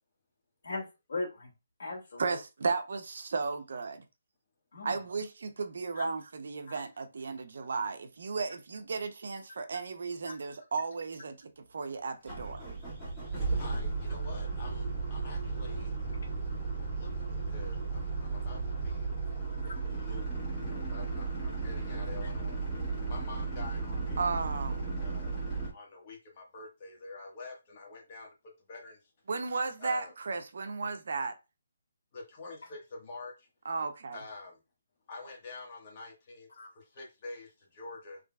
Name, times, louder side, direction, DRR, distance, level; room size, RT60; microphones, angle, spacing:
voice 1, 0.6-1.5 1.8-2.2 4.7-5.0 5.9-6.0 6.7-6.8 10.3-10.4 19.8-19.9 36.6-36.7, left 3 dB, 65° left, 2.1 m, -38 dB
voice 2, 2.2-4.0 4.8-12.6 24.2-24.8 29.3-31.4 33.6-34.2, right 4 dB, 65° right, 0.6 m, -34 dB
sound 1, 12.2-25.7, right 4 dB, 5° left, 1.9 m, -34 dB
voice 3, 13.6-16.0 16.9-19.1 19.9-22.6 23.1-24.2 24.5-25.3 25.7-28.3 28.7-29.1 29.8-30.1 32.1-33.5 34.1-34.6 35.1-36.5 36.7-38.2, left 3 dB, 35° left, 1.3 m, -47 dB
3.8 x 3.2 x 2.3 m
hypercardioid pair, 165°, 0 cm